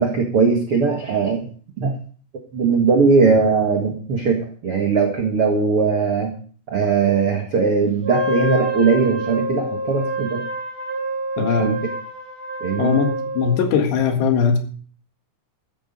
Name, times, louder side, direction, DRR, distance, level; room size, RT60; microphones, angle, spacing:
voice 1, 0.0-1.5 1.8-2.0 2.5-6.3 6.7-10.4 11.4-11.8 12.6-12.9, right 5 dB, 80° right, 2 dB, 1.2 m, -19 dB
Wind instrument woodwind instrument, 8.0-13.6, right 1 dB, 15° right, 2.9 m, -27 dB
voice 2, 11.4-11.8 12.8-14.6, left 6 dB, 65° left, 5 dB, 3.6 m, -20 dB
14.0 x 10.5 x 5.4 m, 0.43 s
omnidirectional pair, 5.7 m